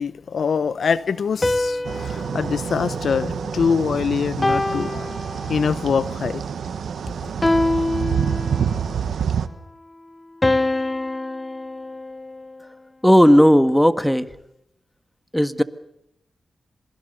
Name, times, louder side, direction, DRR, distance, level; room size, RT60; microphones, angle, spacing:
voice 1, 0.0-5.2 5.5-6.4, left 6 dB, 75° left, 0.8 m, -24 dB
sound 1, 1.4-3.8 4.4-5.9 7.4-8.9 10.4-12.7, left 2 dB, 25° left, 0.9 m, -25 dB
sound 2, 1.8-9.5, right 7 dB, 80° right, 1.5 m, -27 dB
voice 2, 13.0-14.3 15.3-15.6, equal, 5° left, 1.8 m, -14 dB
27.0 x 21.5 x 6.9 m
cardioid pair, 50°, 0 cm